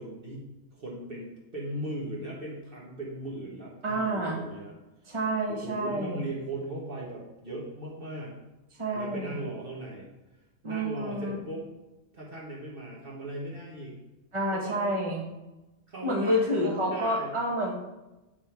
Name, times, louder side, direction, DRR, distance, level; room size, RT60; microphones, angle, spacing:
voice 1, 0.0-4.7 5.5-8.3 8.9-10.1 10.6-11.6 12.1-14.0 14.5-14.9 15.9-17.3, right 1 dB, 45° right, -4 dB, 1.4 m, -38 dB
voice 2, 3.8-4.4 5.1-6.3 8.8-9.4 10.6-11.4 14.3-15.2 16.0-17.7, equal, 25° right, -1 dB, 1.2 m, -29 dB
9.1 x 3.5 x 4.4 m, 1.0 s
omnidirectional pair, 1.5 m